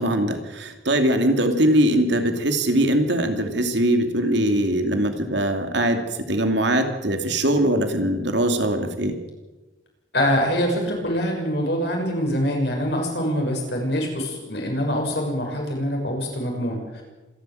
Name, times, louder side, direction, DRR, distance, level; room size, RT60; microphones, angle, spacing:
voice 1, 0.0-6.0 6.3-9.2, right 1 dB, 65° right, 6 dB, 2.7 m, -21 dB
voice 2, 10.1-17.0, equal, 60° left, 2 dB, 6.7 m, -24 dB
27.0 x 13.0 x 7.9 m, 1.2 s
head